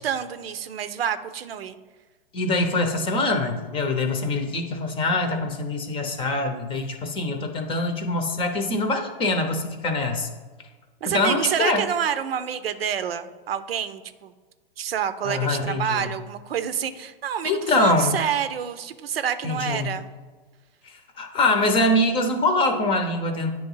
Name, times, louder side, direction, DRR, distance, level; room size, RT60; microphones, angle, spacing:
voice 1, 0.0-1.8 11.0-14.3 14.8-20.1, right 8 dB, 80° right, 11 dB, 0.7 m, -28 dB
voice 2, 2.3-10.3 11.1-11.8 15.2-16.1 17.4-18.1 19.4-19.9 20.8-23.5, left 2 dB, 15° left, 5 dB, 0.8 m, -24 dB
9.2 x 3.1 x 5.5 m, 1.4 s
hypercardioid pair, 135°, 29 cm